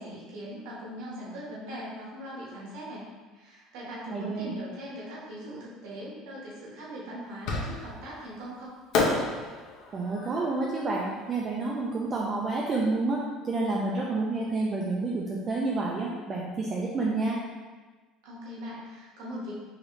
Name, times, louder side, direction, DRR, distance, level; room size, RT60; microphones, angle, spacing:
voice 1, 0.0-8.8 18.2-19.5, equal, 80° right, -5 dB, 1.2 m, -40 dB
voice 2, 4.1-4.5 9.9-17.4, right 3 dB, 25° right, -3 dB, 0.3 m, -29 dB
Fireworks, 7.5-8.1 8.9-12.1, left 3 dB, 55° left, 0.7 m, -31 dB
4.9 x 2.6 x 3.1 m, 1.3 s
cardioid pair, 175°, 0 cm